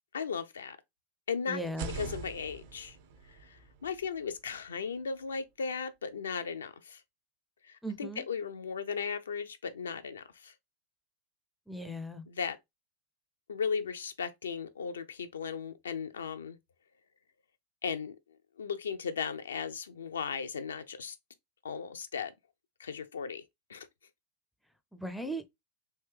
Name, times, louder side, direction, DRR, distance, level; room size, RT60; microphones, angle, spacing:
voice 1, 0.1-0.8 1.3-1.6 1.9-3.0 3.3-7.0 7.6-10.5 12.3-12.6 13.5-16.6 17.8-18.2 18.6-21.2 21.6-22.3 22.8-23.4 23.7-23.9, left 6 dB, 70° left, 0.3 m, -36 dB
voice 2, 1.5-1.9 7.8-8.2 11.7-12.2 24.9-25.4, right 1 dB, ahead, 0.4 m, -37 dB
sound 1, 1.6-5.5, right 5 dB, 50° right, 0.6 m, -45 dB
3.3 x 2.7 x 3.2 m
figure-of-eight pair, 90°, 0 cm